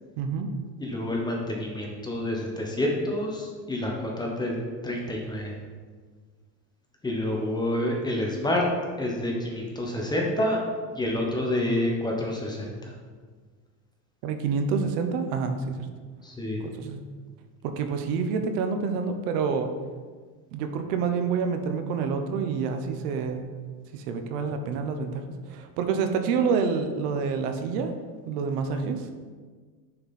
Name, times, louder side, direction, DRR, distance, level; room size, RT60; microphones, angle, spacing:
voice 1, 0.2-0.5 14.2-15.9 16.6-17.0 17.6-19.7 20.5-23.4 23.9-27.9 28.2-29.1, right 5 dB, 85° right, 6 dB, 1.0 m, -28 dB
voice 2, 0.8-5.5 7.0-8.6 9.0-10.6 10.9-12.9 16.2-16.6, left 1 dB, 10° left, -1 dB, 0.9 m, -28 dB
6.7 x 5.6 x 4.2 m, 1.5 s
cardioid pair, 155°, 46 cm